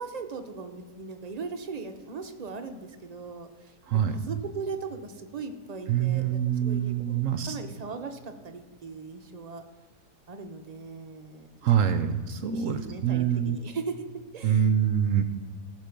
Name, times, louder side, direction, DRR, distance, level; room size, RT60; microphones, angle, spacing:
voice 1, 0.0-9.6 10.3-11.5 11.9-12.0 12.5-14.0 14.3-14.7, right 4 dB, 45° right, 6 dB, 0.5 m, -39 dB
voice 2, 3.9-4.3 5.9-7.6 11.6-13.6 14.4-15.2, right 9 dB, 65° right, 10 dB, 0.8 m, -25 dB
15.0 x 6.3 x 5.2 m, 1.5 s
omnidirectional pair, 1.7 m